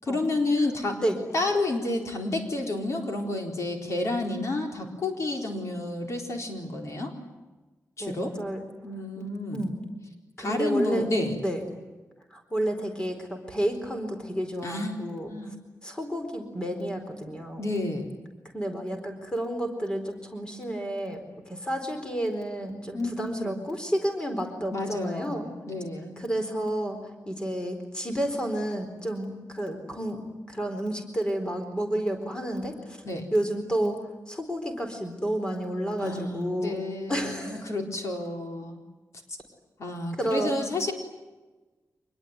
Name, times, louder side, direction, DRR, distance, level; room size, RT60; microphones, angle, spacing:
voice 1, 0.0-1.0 1.3-7.1 8.0-8.3 8.8-9.6 10.4-11.4 14.6-14.9 15.3-15.5 17.6-18.1 22.9-23.1 23.4-23.5 24.7-26.2 33.0-33.3 36.0-38.8 39.3-39.4 39.8-40.9, left 2 dB, 55° left, 2 dB, 4.3 m, -30 dB
voice 2, 8.0-8.6 9.2-9.8 10.4-11.1 11.4-11.6 12.3-15.3 15.8-17.6 18.5-21.2 21.5-25.5 26.2-27.0 27.3-30.2 30.5-33.0 33.3-34.0 34.3-36.8 37.1-37.6 40.2-40.6, right 1 dB, 15° left, 4 dB, 4.2 m, -30 dB
26.0 x 21.0 x 9.7 m, 1.2 s
wide cardioid pair, 170°, 6 cm